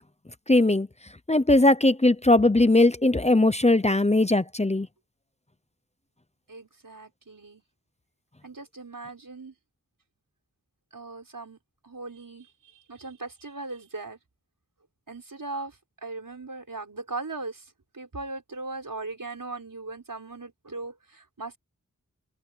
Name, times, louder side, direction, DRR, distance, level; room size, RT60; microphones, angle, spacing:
voice 1, 0.5-0.9 1.3-4.9, left 2 dB, 20° left, 0.8 m, -20 dB
voice 2, 6.5-7.6 8.4-9.5 10.9-11.6 11.8-12.5 12.7-14.2 15.1-17.7 17.9-21.6, right 3 dB, 80° right, 5.4 m, -38 dB
wide cardioid pair, 45°, 32 cm